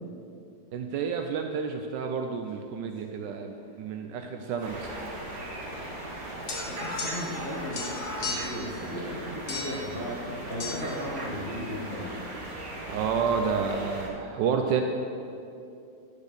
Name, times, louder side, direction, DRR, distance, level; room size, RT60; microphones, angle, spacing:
voice 1, 0.7-5.0 12.9-14.8, right 6 dB, 85° right, 4 dB, 1.2 m, -30 dB
Speech / Shout, 4.4-6.0 6.4-8.3, left 1 dB, 60° left, 3.4 m, -41 dB
sound 1, 4.6-14.1, right 1 dB, 55° right, 1.8 m, -38 dB
sound 2, 6.5-7.5 7.7-8.6 9.5-9.9 10.6-10.8, left 4 dB, 80° left, 1.9 m, -35 dB
voice 2, 6.6-10.2 10.5-12.1, equal, 35° left, -7 dB, 1.6 m, -36 dB
11.0 x 5.2 x 6.6 m, 2.6 s
omnidirectional pair, 1.9 m